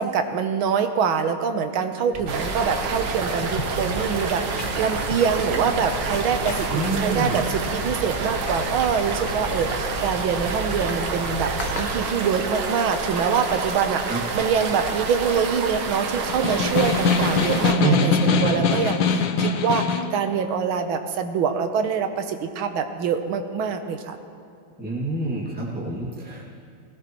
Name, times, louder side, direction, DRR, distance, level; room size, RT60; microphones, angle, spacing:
voice 1, 0.0-24.2, right 6 dB, 80° right, 7 dB, 1.6 m, -25 dB
sound 1, 2.1-12.0, left 1 dB, 35° left, 0.7 m, -34 dB
sound 2, 2.3-17.7, right 4 dB, 65° right, 1.6 m, -29 dB
voice 2, 6.7-7.5 14.0-14.2 17.8-18.7 24.8-26.4, right 3 dB, 5° right, -5 dB, 1.8 m, -26 dB
Snare drum, 16.3-20.1, left 5 dB, 70° left, 1.5 m, -22 dB
19.0 x 16.5 x 3.0 m, 2.5 s
omnidirectional pair, 2.2 m